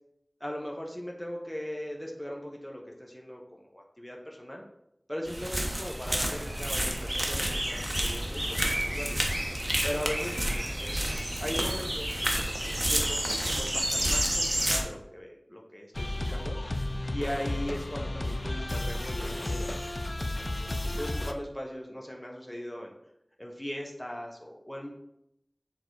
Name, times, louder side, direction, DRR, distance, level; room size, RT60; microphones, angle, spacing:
voice 1, 0.4-4.6 5.1-9.2 9.8-11.1 11.4-16.6 17.1-22.9 23.4-24.9, equal, 15° left, 0 dB, 1.1 m, -39 dB
sound 1, 5.3-14.8, right 1 dB, 25° right, 1.2 m, -30 dB
sound 2, 6.0-14.9, right 1 dB, 75° right, 0.8 m, -39 dB
sound 3, 16.0-21.3, left 1 dB, 65° left, 0.6 m, -33 dB
6.8 x 3.9 x 4.7 m, 0.80 s
wide cardioid pair, 40°, 0 cm